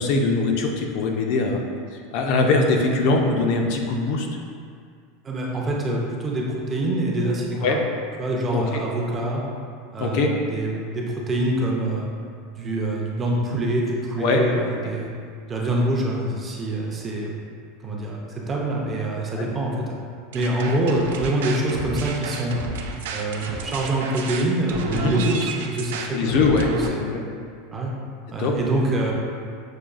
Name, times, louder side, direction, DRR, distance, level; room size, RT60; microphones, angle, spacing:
voice 1, 0.0-1.6 1.9-4.3 7.6-7.8 8.5-8.8 10.0-10.4 14.2-14.4 19.2-19.5 24.9-25.2 26.1-27.2 28.4-28.6, left 3 dB, 50° left, 2 dB, 0.4 m, -22 dB
voice 2, 5.2-7.8 8.2-9.4 9.9-12.1 12.5-15.1 15.5-17.4 17.8-20.0 20.3-22.5 23.1-26.4 26.7-27.1 27.7-27.9 28.3-29.1, right 1 dB, 15° right, -2 dB, 0.4 m, -25 dB
sound 1, 20.3-26.9, right 4 dB, 80° right, 0.3 m, -31 dB
6.3 x 2.3 x 2.3 m, 2.2 s
supercardioid pair, 170°, 0 cm